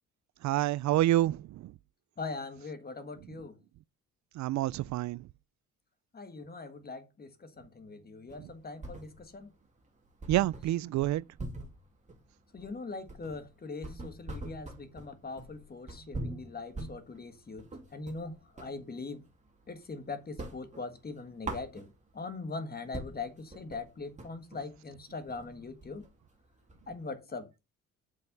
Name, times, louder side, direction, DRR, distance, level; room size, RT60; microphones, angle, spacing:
voice 1, 0.4-1.7 4.3-5.3 8.4-8.5 10.3-11.2, right 15 dB, 70° right, 0.4 m, -28 dB
voice 2, 2.2-3.6 6.1-9.5 12.5-19.3 19.7-26.1 26.9-27.5, left 3 dB, 30° left, 1.7 m, -41 dB
sound 1, 8.3-9.5 9.8-9.9 10.2-18.8 19.2-19.9 20.2-22.2 22.6-22.7 22.9-27.1, right 2 dB, 25° right, 2.7 m, -43 dB
7.6 x 5.7 x 5.3 m
cardioid pair, 90°, 30 cm